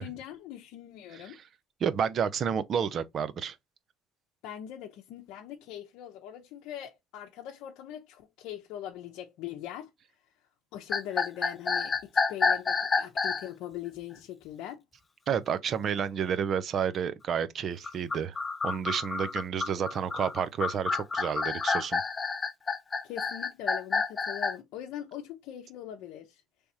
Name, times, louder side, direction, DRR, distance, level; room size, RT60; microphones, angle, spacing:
voice 1, 0.0-1.4 4.4-9.9 10.7-14.8 23.0-26.4, left 11 dB, 75° left, 0.7 m, -41 dB
voice 2, 1.8-3.6 15.3-18.4 18.6-22.0, right 7 dB, 45° right, 0.5 m, -30 dB
sound 1, 10.9-13.5 17.8-24.6, left 4 dB, 25° left, 0.6 m, -29 dB
4.6 x 3.4 x 2.7 m
cardioid pair, 105°, 0 cm